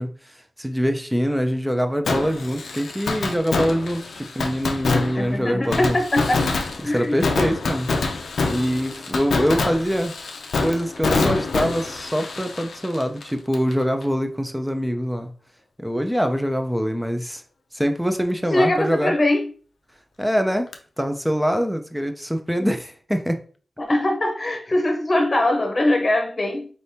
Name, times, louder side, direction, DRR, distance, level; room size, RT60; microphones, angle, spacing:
voice 1, 0.0-6.0 6.8-7.9 8.4-10.1 10.6-15.3 15.8-17.4 17.7-19.1 20.2-20.7 21.0-23.4, equal, 5° right, 0.7 m, -24 dB
Fireworks, 2.1-13.7 14.0-14.1 20.7-20.8, left 3 dB, 80° left, 0.5 m, -26 dB
voice 2, 4.9-6.5 6.8-7.4 18.5-19.5 22.6-22.7 23.8-26.7, left 1 dB, 40° left, 1.0 m, -22 dB
4.3 x 3.3 x 2.8 m
cardioid pair, 50°, 0 cm